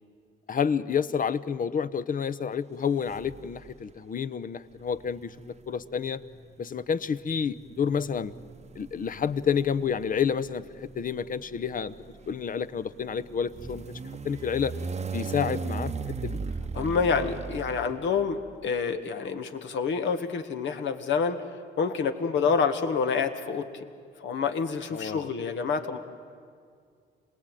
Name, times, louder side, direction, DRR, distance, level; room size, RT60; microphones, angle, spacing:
voice 1, 0.5-5.3 5.7-6.2 6.6-8.3 8.8-11.9 12.3-13.8 14.2-14.7 15.1-15.9 16.2-16.4 24.9-25.2, left 7 dB, 45° left, 14 dB, 0.9 m, -29 dB
sound 1, 3.1-3.8 4.8-18.5, right 4 dB, 35° right, 0.9 m, -38 dB
voice 2, 16.7-21.4 21.8-23.8 24.2-26.0, left 5 dB, 70° left, 7 dB, 1.9 m, -27 dB
27.5 x 19.5 x 9.1 m, 2.2 s
cardioid pair, 90°, 20 cm